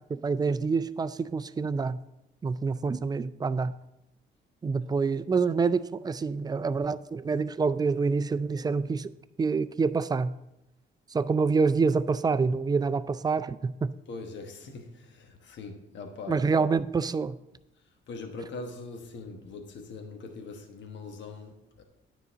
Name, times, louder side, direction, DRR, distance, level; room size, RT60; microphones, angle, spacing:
voice 1, 0.0-2.0 2.4-3.7 4.6-9.1 9.4-10.4 11.1-13.9 16.3-17.4, right 4 dB, 20° right, 0.3 m, -27 dB
voice 2, 14.1-16.5 18.1-21.8, left 3 dB, 65° left, 1.1 m, -42 dB
9.5 x 4.0 x 5.5 m
cardioid pair, 90°, 20 cm